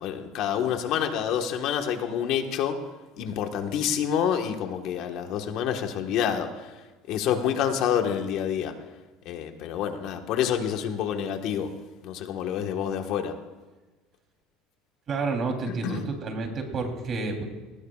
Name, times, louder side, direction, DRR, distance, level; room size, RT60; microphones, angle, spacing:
voice 1, 0.0-2.8 3.2-6.7 7.1-8.7 9.2-11.7 12.0-13.3 15.7-16.0, left 9 dB, 60° left, 5 dB, 1.4 m, -28 dB
voice 2, 15.1-17.4, right 3 dB, 40° right, 3 dB, 3.4 m, -30 dB
21.0 x 19.0 x 2.4 m, 1.2 s
supercardioid pair, 120°, 0 cm